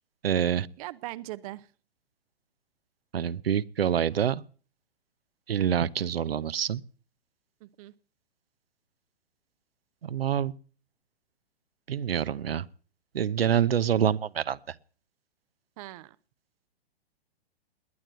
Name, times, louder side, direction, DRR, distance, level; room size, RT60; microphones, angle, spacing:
voice 1, 0.2-0.7 3.1-4.4 5.5-6.8 10.0-10.5 11.9-12.7 13.1-14.7, right 9 dB, 70° right, 0.9 m, -26 dB
voice 2, 0.8-1.7 7.6-7.9 15.8-16.2, right 17 dB, 35° right, 0.7 m, -40 dB
21.0 x 8.9 x 7.7 m
figure-of-eight pair, 115°, 31 cm